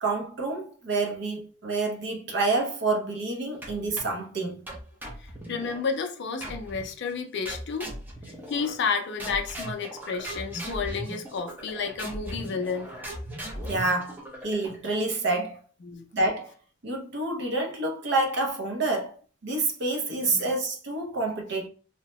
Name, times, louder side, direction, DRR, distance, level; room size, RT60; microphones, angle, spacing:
voice 1, 0.0-4.6 13.7-14.2 14.4-15.6 16.1-16.5 16.8-19.2 19.4-21.7, right 2 dB, 55° right, 0.6 m, -28 dB
sound 1, 3.6-4.2 4.7-5.8 6.4-6.9 7.4-8.9 9.2-14.9, right 1 dB, 10° right, 0.5 m, -38 dB
voice 2, 5.2-8.0 8.3-12.9 13.5-13.6 15.8-16.1 20.3-20.5, left 5 dB, 55° left, 0.4 m, -31 dB
2.7 x 2.1 x 2.9 m
head